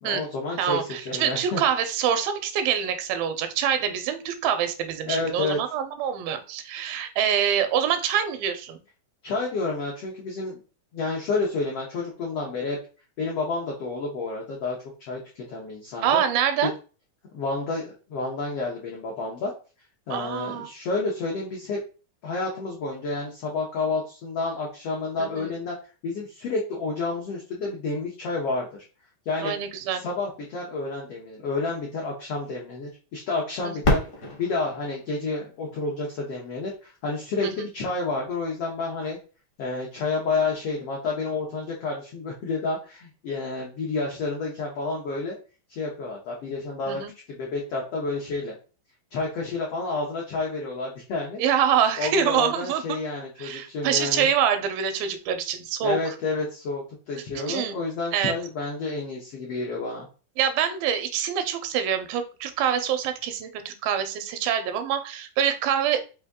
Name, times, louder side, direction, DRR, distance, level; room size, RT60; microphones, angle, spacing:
voice 1, 0.0-1.6 5.0-5.6 9.2-10.6 10.9-12.8 13.2-16.2 16.6-16.7 17.3-19.5 20.1-21.8 22.2-25.8 26.0-28.7 29.3-29.5 29.9-34.0 34.4-39.2 39.6-45.4 45.7-47.0 47.3-48.5 49.1-51.4 52.0-54.3 55.8-60.1, left 3 dB, 80° left, -2 dB, 1.3 m, -30 dB
voice 2, 0.6-8.8 16.0-16.7 20.1-20.7 25.2-25.5 29.4-30.0 33.6-33.7 37.4-37.7 46.9-47.1 51.4-52.8 53.4-56.0 57.4-57.7 58.1-58.3 60.4-66.1, right 8 dB, 85° right, 9 dB, 2.5 m, -25 dB
Fireworks, 33.8-36.6 37.3-37.4 38.1-38.5 40.4-40.5, left 1 dB, 45° left, 1.2 m, -29 dB
5.5 x 2.7 x 3.5 m, 0.35 s
omnidirectional pair, 4.1 m